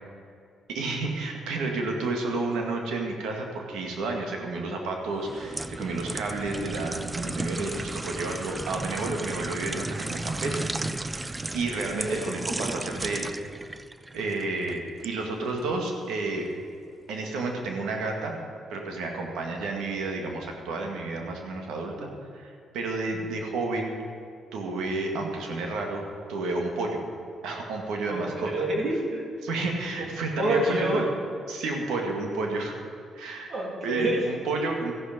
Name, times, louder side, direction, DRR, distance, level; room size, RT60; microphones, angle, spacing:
voice 1, 0.7-10.7 11.0-11.2 11.5-13.3 14.1-16.5 17.1-18.3 18.7-23.9 24.5-27.0 27.4-28.5 29.4-31.1 31.5-32.7 33.1-33.5 33.8-34.9, right 3 dB, 85° right, 2 dB, 2.1 m, -31 dB
sound 1, 5.2-15.1 15.6-15.8, right 2 dB, 15° right, 0.5 m, -34 dB
voice 2, 12.0-12.3 25.3-25.4 28.1-29.3 30.4-31.0 33.5-34.2, right 1 dB, 55° right, -1 dB, 3.1 m, -28 dB
14.0 x 11.0 x 5.3 m, 2.4 s
cardioid pair, 90°, 0 cm